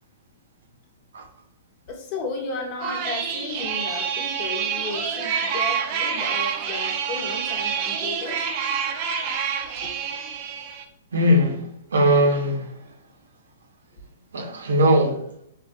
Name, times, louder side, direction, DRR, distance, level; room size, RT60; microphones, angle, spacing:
voice 1, 1.9-8.5 9.8-9.9 13.9-14.0, left 3 dB, 45° left, 0.8 m, -34 dB
sound 1, 2.8-10.8, right 7 dB, 40° right, 0.5 m, -27 dB
voice 2, 11.1-11.6 11.9-12.6 14.3-15.2, equal, 85° right, 0.7 m, -19 dB
3.6 x 2.2 x 2.5 m
hypercardioid pair, 135°, 0 cm